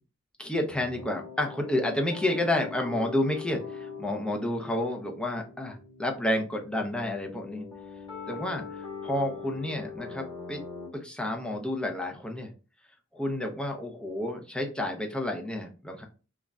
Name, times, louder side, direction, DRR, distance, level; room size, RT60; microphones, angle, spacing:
voice 1, 0.4-7.6 8.3-8.6 9.0-10.6 10.9-12.5 13.1-16.0, left 1 dB, 5° left, 2 dB, 0.4 m, -30 dB
sound 1, 0.7-10.9, left 5 dB, 20° left, 1.0 m, -42 dB
2.4 x 2.1 x 3.3 m, 0.34 s
head